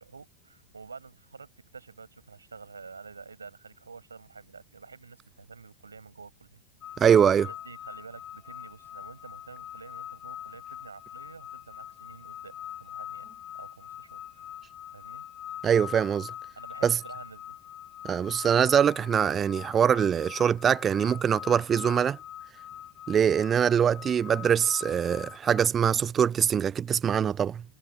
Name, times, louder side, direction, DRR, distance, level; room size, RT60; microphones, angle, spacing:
voice 1, 0.0-6.6 6.9-7.0 7.4-13.3 13.5-14.5 14.9-15.3 16.6-17.6, right 5 dB, 75° right, 7.4 m, -49 dB
sound 1, 6.8-25.7, left 11 dB, 30° left, 0.7 m, -43 dB
voice 2, 7.0-7.5 15.6-16.3 16.8-17.0 18.0-22.2 23.1-27.6, right 8 dB, 25° right, 0.3 m, -23 dB
figure-of-eight pair, 90°, 0 cm